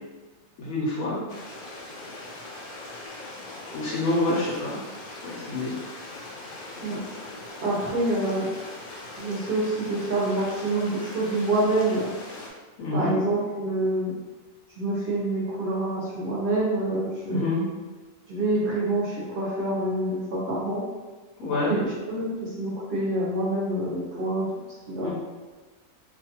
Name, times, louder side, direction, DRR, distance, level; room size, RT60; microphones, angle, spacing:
voice 1, 0.6-1.2 3.7-4.8 5.2-5.7 12.8-13.1 17.2-17.6 21.4-21.7 25.0-25.1, left 2 dB, 80° left, -6 dB, 1.0 m, -27 dB
Stream, 1.3-12.5, left 2 dB, 60° left, 0.5 m, -40 dB
voice 2, 7.6-8.5 9.2-12.1 12.9-14.1 14.8-17.5 18.3-20.9 21.5-24.5 24.9-25.1, right 2 dB, 50° right, -5 dB, 0.8 m, -27 dB
2.5 x 2.4 x 2.8 m, 1.3 s
omnidirectional pair, 1.4 m